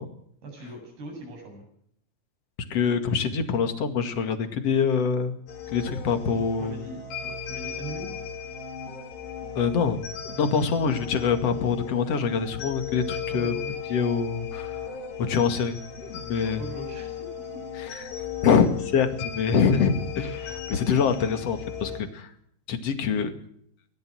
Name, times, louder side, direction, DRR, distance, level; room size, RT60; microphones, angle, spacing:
voice 1, 0.4-1.6 6.6-8.1 13.3-13.7 16.4-17.3 17.5-17.6, right 2 dB, 65° right, 3 dB, 9.8 m, -40 dB
voice 2, 2.7-5.4 5.7-6.7 9.6-13.5 13.9-14.9 15.2-16.6 18.2-22.3 22.7-23.3, left 6 dB, 45° left, 8 dB, 2.7 m, -25 dB
sound 1, 5.5-22.0, left 7 dB, 75° left, 5.7 m, -36 dB
24.0 x 17.5 x 6.3 m, 0.69 s
omnidirectional pair, 4.8 m